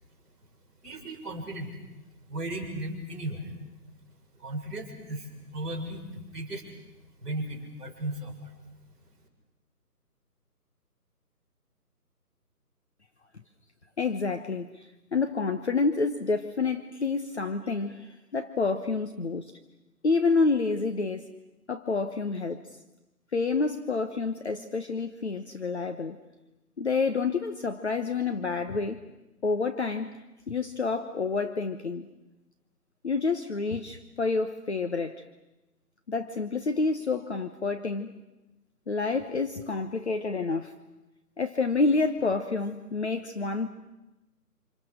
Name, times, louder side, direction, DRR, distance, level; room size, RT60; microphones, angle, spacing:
voice 1, 0.8-1.8 2.3-3.5 4.3-6.7 7.2-8.5, right 1 dB, ahead, -11 dB, 4.9 m, -36 dB
voice 2, 14.0-19.5 20.0-21.3 21.7-22.6 23.3-26.2 26.8-29.0 29.4-30.1 30.5-32.1 33.0-35.2 36.1-38.1 38.9-40.7 41.4-43.7, left 4 dB, 45° left, 8 dB, 1.1 m, -28 dB
29.0 x 27.0 x 6.5 m, 1.0 s
figure-of-eight pair, 170°, 48 cm